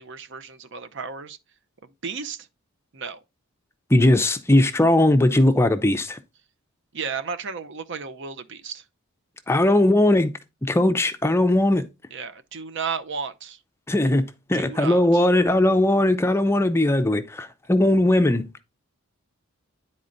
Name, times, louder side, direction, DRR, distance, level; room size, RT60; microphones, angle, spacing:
voice 1, 0.0-1.4 2.0-2.5 2.9-3.2 6.9-8.8 12.1-13.6 14.5-15.2, right 5 dB, 55° right, 0.7 m, -33 dB
voice 2, 3.9-6.2 9.5-10.3 10.6-11.9 13.9-14.2 14.5-18.5, left 1 dB, 10° left, 0.4 m, -19 dB
9.8 x 4.3 x 3.8 m
head